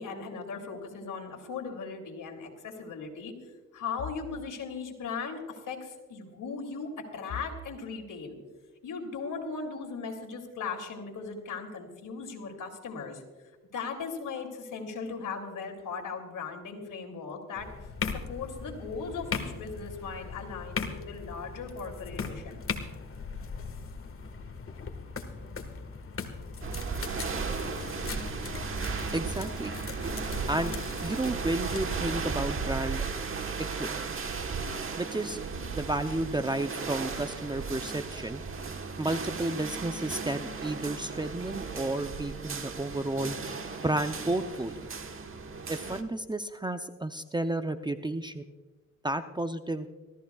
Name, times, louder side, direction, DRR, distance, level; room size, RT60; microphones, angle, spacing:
voice 1, 0.0-3.3 3.7-8.4 8.8-13.2 13.7-22.6, left 5 dB, 70° left, 3 dB, 2.8 m, -38 dB
sound 1, 17.6-31.8, left 5 dB, 40° left, 1.6 m, -39 dB
sound 2, 26.6-46.0, right 5 dB, 40° right, 1.3 m, -35 dB
voice 2, 29.1-29.7 30.5-33.0 33.6-33.9 35.0-35.4 35.7-38.4 39.0-43.4 43.8-44.7 45.7-48.4 49.0-49.9, right 2 dB, 15° right, 9 dB, 0.6 m, -32 dB
25.5 x 14.0 x 2.3 m, 1.3 s
cardioid pair, 85°, 33 cm